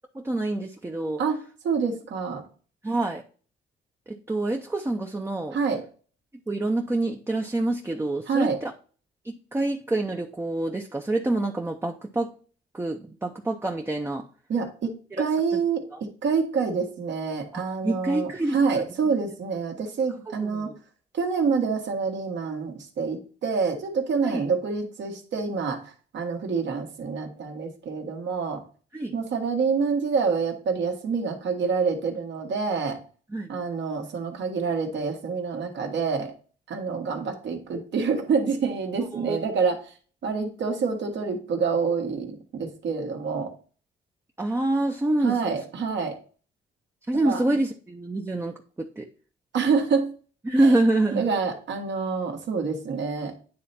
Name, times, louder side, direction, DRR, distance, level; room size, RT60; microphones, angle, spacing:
voice 1, 0.1-1.2 2.8-3.2 4.1-5.6 6.5-8.7 9.2-12.3 12.7-14.3 15.1-15.2 15.5-15.6 15.9-16.0 17.5-18.8 20.4-20.8 24.2-24.4 28.9-29.2 33.3-33.5 39.1-39.4 44.4-45.6 47.1-49.1 50.5-51.3, right 2 dB, 10° right, 2 dB, 0.7 m, -26 dB
voice 2, 1.2-2.4 5.5-5.8 8.3-8.6 14.5-14.9 15.2-20.7 21.1-28.6 29.1-33.0 33.5-36.3 36.7-39.8 40.2-43.5 45.2-46.2 47.2-47.4 49.5-50.1 50.6-50.7 51.1-53.3, right 5 dB, 65° right, 3 dB, 1.6 m, -27 dB
9.5 x 3.3 x 4.2 m, 0.40 s
cardioid pair, 90°, 20 cm